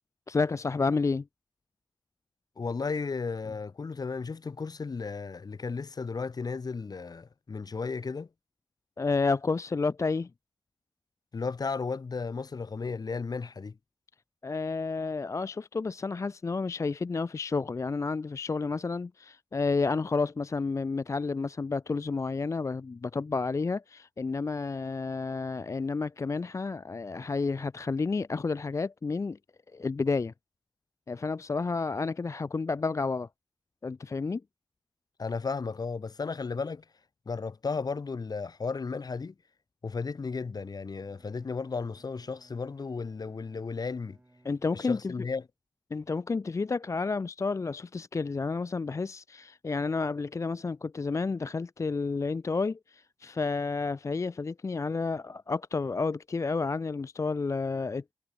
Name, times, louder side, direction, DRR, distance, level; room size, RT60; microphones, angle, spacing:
voice 1, 0.3-1.3 9.0-10.3 14.4-29.4 29.7-30.3 31.1-33.3 33.8-34.4 44.4-45.1 45.9-58.0, left 4 dB, 40° left, 0.4 m, -30 dB
voice 2, 2.6-8.3 11.3-13.8 35.2-36.8 37.3-39.3 39.8-44.2 44.7-45.5, left 4 dB, 55° left, 0.8 m, -34 dB
Bowed string instrument, 40.9-45.2, right 1 dB, 25° right, 6.8 m, -63 dB
cardioid pair, 60°, 8 cm